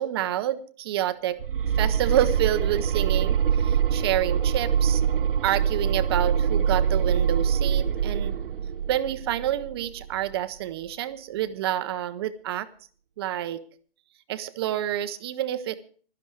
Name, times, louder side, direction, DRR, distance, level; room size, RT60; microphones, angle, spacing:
voice 1, 0.0-1.4 1.8-5.0 5.4-8.3 8.9-12.7 13.2-13.6 14.3-15.8, right 12 dB, 25° right, 11 dB, 0.7 m, -28 dB
sound 1, 1.4-10.3, right 8 dB, 65° right, 0.9 m, -24 dB
15.5 x 12.5 x 4.6 m, 0.43 s
hypercardioid pair, 155°, 29 cm